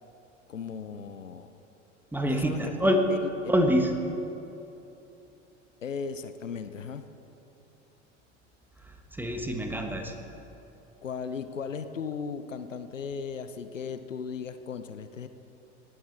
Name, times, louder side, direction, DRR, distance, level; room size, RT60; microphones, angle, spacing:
voice 1, 0.5-1.5 2.3-2.7 3.1-3.5 5.8-7.0 11.0-15.3, left 6 dB, 85° left, 11 dB, 0.7 m, -37 dB
voice 2, 2.1-3.0 3.5-3.9 9.2-10.1, equal, 5° right, 4 dB, 1.3 m, -25 dB
18.0 x 11.0 x 4.4 m, 3.0 s
figure-of-eight pair, 80°, 37 cm